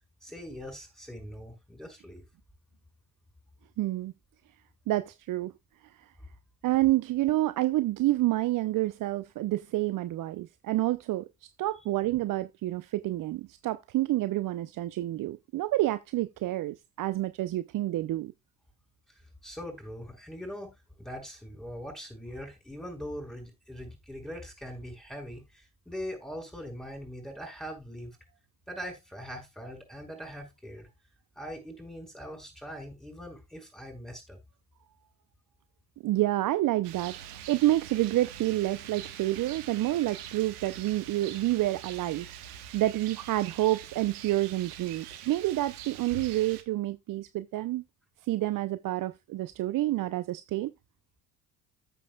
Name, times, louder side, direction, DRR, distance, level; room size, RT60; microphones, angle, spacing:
voice 1, 0.2-2.2 19.4-28.2 28.7-30.9 31.4-34.4, equal, ahead, 5.5 m, -42 dB
voice 2, 3.8-4.1 4.9-5.5 6.0-6.1 6.6-18.3 36.0-42.3 42.7-47.8 48.2-50.7, right 16 dB, 45° right, 0.6 m, -28 dB
Rain, 36.8-46.6, right 10 dB, 75° right, 1.4 m, -44 dB
14.0 x 6.8 x 2.3 m
hypercardioid pair, 55°, 47 cm